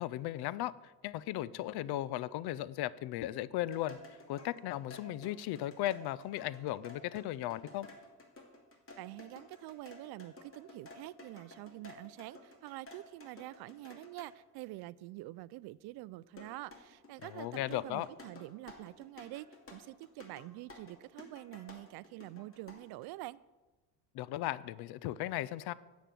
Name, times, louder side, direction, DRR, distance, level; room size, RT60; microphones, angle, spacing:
voice 1, 0.0-4.0 4.3-7.9 17.2-18.1 24.1-25.7, left 14 dB, 55° left, 19 dB, 0.6 m, -36 dB
sound 1, 3.6-14.3 16.4-23.1, left 2 dB, 30° left, 2.4 m, -53 dB
voice 2, 9.0-23.4, right 18 dB, 60° right, 19 dB, 0.5 m, -46 dB
9.1 x 7.1 x 7.5 m, 1.2 s
supercardioid pair, 80°, 45 cm